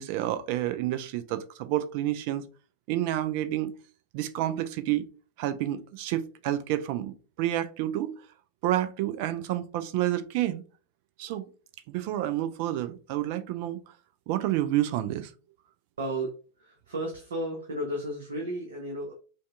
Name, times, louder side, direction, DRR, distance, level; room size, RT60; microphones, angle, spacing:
voice 1, 0.0-2.5 2.9-3.7 4.1-5.1 5.4-8.2 8.6-10.6 11.2-11.4 11.9-13.8 14.3-15.3, right 13 dB, 45° right, 0.4 m, -29 dB
voice 2, 16.0-16.3 16.6-19.1, right 1 dB, 65° right, 0.8 m, -33 dB
5.2 x 2.3 x 2.4 m
figure-of-eight pair, 90°, 0 cm